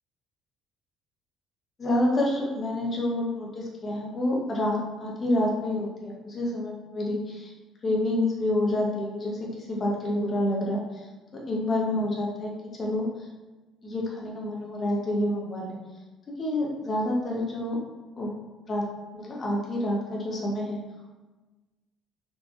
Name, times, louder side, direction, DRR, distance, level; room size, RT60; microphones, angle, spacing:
voice 1, 1.8-7.5 7.8-10.8 11.3-13.0 13.8-15.7 16.4-17.8 18.2-18.3 18.7-18.9 19.1-20.8, left 1 dB, 25° left, -3 dB, 0.7 m, -28 dB
3.9 x 3.1 x 2.3 m, 1.2 s
cardioid pair, 165°, 0 cm